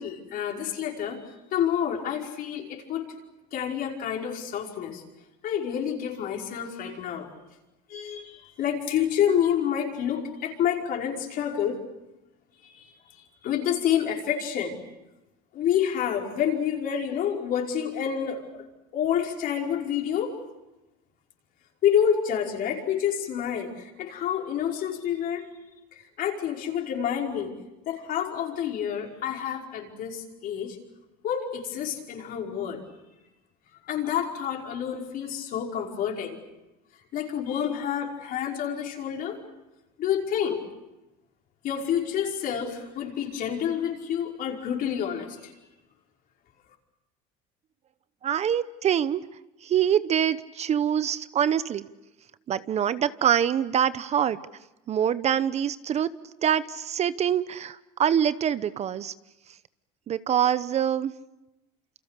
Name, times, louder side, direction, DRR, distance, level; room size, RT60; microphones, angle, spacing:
voice 1, 0.0-3.1 3.5-5.0 5.4-7.3 7.9-11.8 12.6-14.8 15.5-18.6 18.9-20.4 21.8-25.5 26.0-27.5 27.9-30.8 31.2-32.8 33.8-36.4 37.1-39.4 40.0-40.7 41.6-45.5, left 9 dB, 55° left, 1 dB, 5.3 m, -28 dB
voice 2, 48.2-49.2 49.6-51.8 52.5-54.4 54.9-56.1 56.4-59.1 60.1-61.1, right 9 dB, 40° right, 15 dB, 0.8 m, -25 dB
28.5 x 26.5 x 6.7 m, 0.97 s
supercardioid pair, 110°, 18 cm